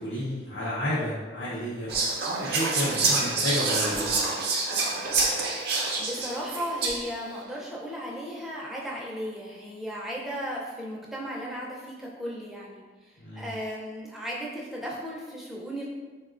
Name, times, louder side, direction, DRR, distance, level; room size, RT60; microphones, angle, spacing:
voice 1, 0.0-1.9 2.3-4.2 13.2-13.5, left 1 dB, 75° left, -8 dB, 0.6 m, -31 dB
Whispering, 1.9-7.2, right 3 dB, 60° right, 0.5 m, -27 dB
voice 2, 6.0-15.9, equal, ahead, -5 dB, 0.4 m, -35 dB
3.6 x 2.1 x 2.4 m, 1.3 s
head